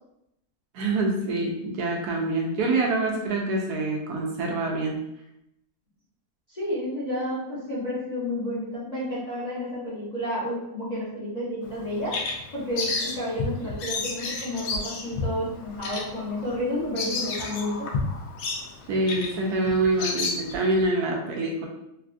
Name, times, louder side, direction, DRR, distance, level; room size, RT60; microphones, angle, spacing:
voice 1, 0.7-5.0 18.9-21.7, right 2 dB, 80° right, 0 dB, 1.1 m, -25 dB
voice 2, 6.5-12.3 12.5-17.9, left 1 dB, 35° left, -9 dB, 0.7 m, -31 dB
Bird vocalization bird call bird song, 11.6-20.9, left 3 dB, 80° left, 1.2 m, -32 dB
3.4 x 2.3 x 2.4 m, 0.83 s
omnidirectional pair, 1.7 m